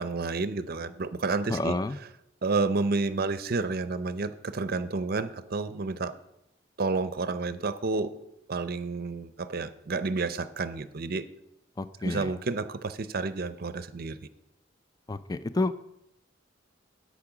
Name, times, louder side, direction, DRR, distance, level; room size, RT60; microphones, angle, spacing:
voice 1, 0.0-1.8 2.4-6.1 6.8-8.1 8.5-11.3 12.0-14.2, right 3 dB, 50° right, 13 dB, 0.6 m, -30 dB
voice 2, 1.5-2.0 11.8-12.3 15.1-15.7, left 2 dB, 20° left, 13 dB, 0.4 m, -29 dB
8.5 x 8.5 x 6.0 m, 0.84 s
head